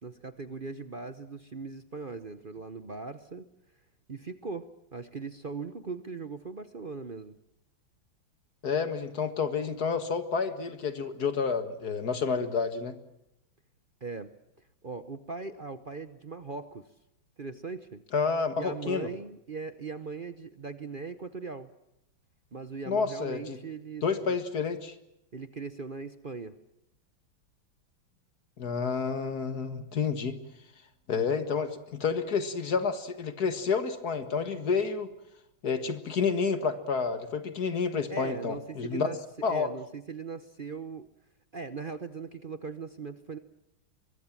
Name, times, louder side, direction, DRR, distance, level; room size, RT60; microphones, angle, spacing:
voice 1, 0.0-3.5 4.1-7.4 14.0-14.3 14.8-16.9 17.4-18.0 18.6-21.7 22.5-24.4 25.3-26.6 38.1-39.2 39.5-41.1 41.5-43.4, right 4 dB, 40° right, 11 dB, 0.7 m, -39 dB
voice 2, 8.6-13.0 18.1-19.1 22.9-23.6 24.0-24.9 28.6-30.4 31.1-35.1 35.6-39.1 39.4-39.7, left 5 dB, 50° left, 10 dB, 2.1 m, -29 dB
24.0 x 22.5 x 7.4 m, 0.82 s
omnidirectional pair, 2.2 m